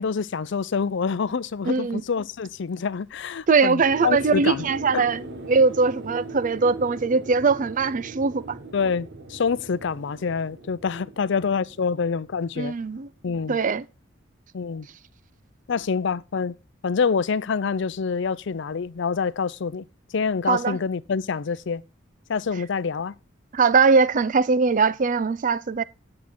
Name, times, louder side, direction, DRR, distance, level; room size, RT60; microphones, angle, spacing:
voice 1, 0.0-4.7 4.9-5.1 8.7-12.7 13.2-13.6 14.5-14.9 15.7-16.6 16.8-19.8 20.1-21.8 22.3-23.1, left 5 dB, 65° left, 0.5 m, -26 dB
voice 2, 1.7-2.0 3.5-8.6 12.6-13.1 13.5-13.8 20.5-20.8 23.5-25.8, right 4 dB, 40° right, 0.5 m, -21 dB
sound 1, 3.8-13.1 13.3-13.4, right 2 dB, 60° right, 1.3 m, -40 dB
10.5 x 7.5 x 4.3 m
head